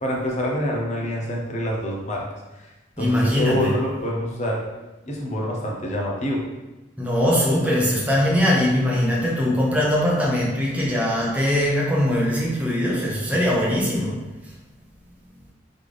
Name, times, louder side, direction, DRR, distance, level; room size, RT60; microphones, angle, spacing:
voice 1, 0.0-2.2 3.0-4.6 5.1-6.4, equal, 35° left, -2 dB, 0.8 m, -26 dB
voice 2, 3.0-3.7 7.0-14.2, left 1 dB, 10° right, -4 dB, 0.8 m, -21 dB
3.9 x 3.3 x 3.4 m, 1.1 s
head